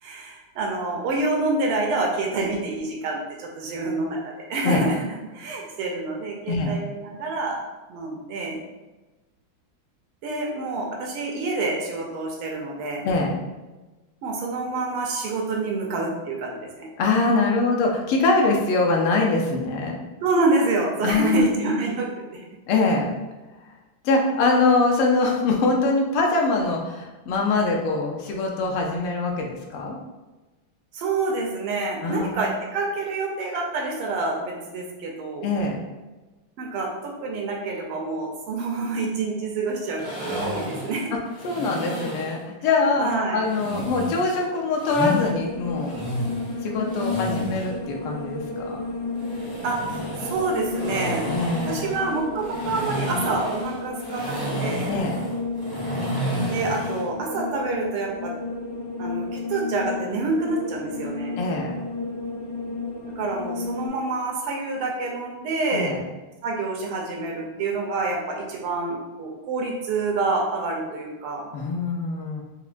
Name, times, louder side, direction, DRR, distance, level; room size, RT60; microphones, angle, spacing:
voice 1, 0.0-5.0 5.3-7.6 7.9-8.6 10.2-13.0 14.2-16.8 20.2-22.1 30.9-35.5 36.6-41.2 43.0-43.4 49.6-51.2 51.7-54.9 56.5-58.3 59.0-61.4 63.2-65.9 66.4-71.4, right 3 dB, 85° right, -1 dB, 1.6 m, -27 dB
voice 2, 17.0-20.0 21.0-21.5 22.7-23.1 24.0-30.0 32.0-32.4 35.4-35.8 41.4-46.0 46.6-48.8 51.2-51.9 54.9-55.2 61.4-61.7 65.7-66.0 71.5-72.4, left 3 dB, 85° left, 0 dB, 1.5 m, -23 dB
sound 1, 40.0-42.4 43.5-45.3 45.7-47.7 49.2-57.1, equal, 10° left, 0.4 m, -32 dB
sound 2, 45.0-63.9, left 3 dB, 65° left, 0.8 m, -32 dB
4.8 x 2.1 x 2.4 m, 1.1 s
omnidirectional pair, 2.4 m